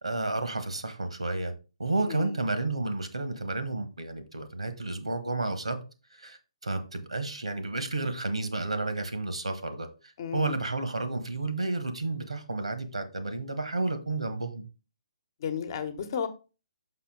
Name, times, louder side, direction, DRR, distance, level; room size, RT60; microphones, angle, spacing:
voice 1, 0.0-1.5 1.8-5.8 6.1-9.9 10.3-14.6, right 2 dB, 75° right, 1.3 m, -31 dB
voice 2, 2.0-2.4 10.2-10.5 15.4-16.3, left 7 dB, 40° left, 1.1 m, -33 dB
6.0 x 5.8 x 3.8 m
figure-of-eight pair, 135°, 3 cm